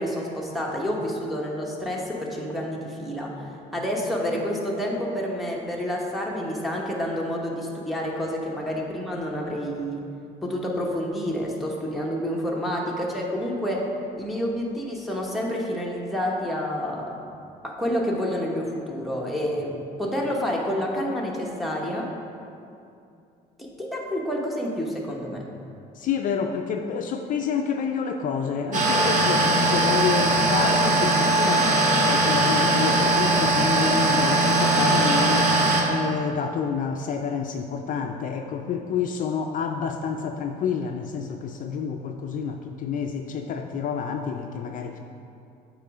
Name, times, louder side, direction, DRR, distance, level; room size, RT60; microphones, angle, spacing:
voice 1, 0.0-3.3 3.7-10.0 10.4-13.9 14.2-17.2 17.6-22.1 23.6-25.4, equal, ahead, -3 dB, 1.0 m, -28 dB
voice 2, 25.9-45.0, left 6 dB, 50° left, 4 dB, 0.4 m, -29 dB
sound 1, 28.7-35.8, right 2 dB, 50° right, 1.2 m, -20 dB
8.4 x 3.1 x 4.8 m, 2.6 s
cardioid pair, 110°, 17 cm